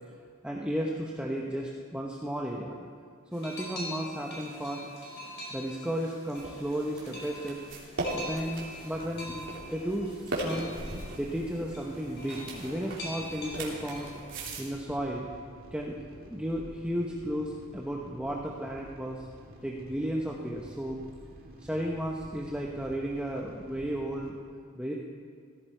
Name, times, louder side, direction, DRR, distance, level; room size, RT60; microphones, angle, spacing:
voice 1, 0.4-2.9 3.3-4.8 5.5-7.6 8.1-10.7 11.1-14.1 14.6-15.3 15.7-16.0 16.2-19.3 19.6-21.0 21.6-24.4 24.8-24.9, equal, 5° right, -2 dB, 0.9 m, -34 dB
sound 1, 3.3-14.1, left 1 dB, 55° left, 4.9 m, -44 dB
sound 2, 6.3-14.6, right 1 dB, 65° right, 3.3 m, -38 dB
sound 3, 8.9-24.3, equal, 45° right, 2.1 m, -50 dB
18.0 x 15.0 x 4.5 m, 2.1 s
head